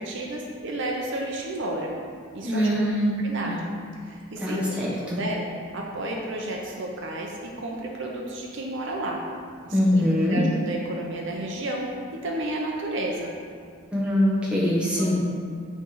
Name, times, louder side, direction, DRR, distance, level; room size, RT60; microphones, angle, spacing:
voice 1, 0.0-1.9 2.3-2.7 3.2-3.6 4.0-4.6 5.1-5.4 5.7-9.2 9.6-11.9 12.2-13.3 15.0-15.1, right 1 dB, 60° right, -1 dB, 0.8 m, -32 dB
voice 2, 2.4-3.2 3.5-3.6 4.4-5.2 9.7-10.5 13.9-15.1, equal, 5° right, -7 dB, 1.4 m, -23 dB
9.0 x 3.4 x 5.7 m, 2.1 s
head